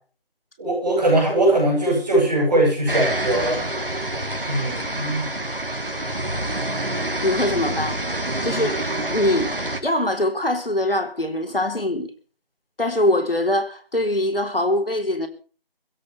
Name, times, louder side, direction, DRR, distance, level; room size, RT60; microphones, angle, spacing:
voice 1, 0.6-3.6 4.4-5.3, right 1 dB, 5° right, 6.9 m, -20 dB
sound 1, 2.9-9.8, right 1 dB, 65° right, 3.6 m, -27 dB
voice 2, 7.2-8.0 8.4-9.6 9.8-12.1 12.8-15.3, left 1 dB, 70° left, 4.0 m, -23 dB
22.0 x 16.5 x 3.5 m
figure-of-eight pair, 175°, 30 cm